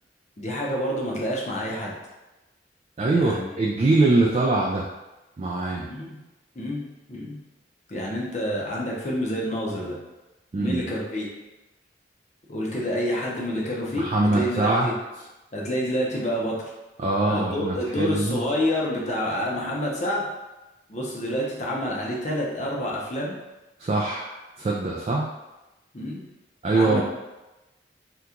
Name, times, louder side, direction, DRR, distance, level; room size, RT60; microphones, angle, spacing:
voice 1, 0.4-1.9 3.1-3.5 5.9-6.2 6.6-7.4 7.9-10.0 10.6-11.3 12.5-14.1 14.3-14.9 15.5-16.7 17.3-20.3 20.9-23.3 25.9-26.2 26.7-27.0, equal, 40° left, -3 dB, 0.7 m, -28 dB
voice 2, 3.0-4.9 5.4-5.9 10.5-10.8 13.9-14.9 17.0-18.4 23.8-25.3 26.6-27.0, right 2 dB, 35° right, -2 dB, 0.3 m, -23 dB
2.9 x 2.3 x 3.6 m, 1.0 s
head